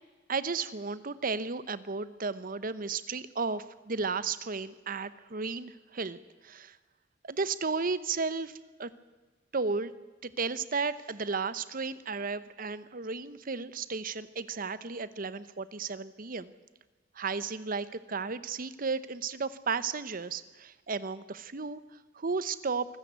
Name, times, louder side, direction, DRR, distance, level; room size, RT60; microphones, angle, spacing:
voice 1, 0.3-6.8 7.2-8.5 8.8-8.9 9.5-9.9 10.2-16.5 17.2-21.8 22.2-22.9, right 4 dB, 45° right, 15 dB, 0.9 m, -34 dB
24.0 x 14.5 x 8.2 m, 1.3 s
head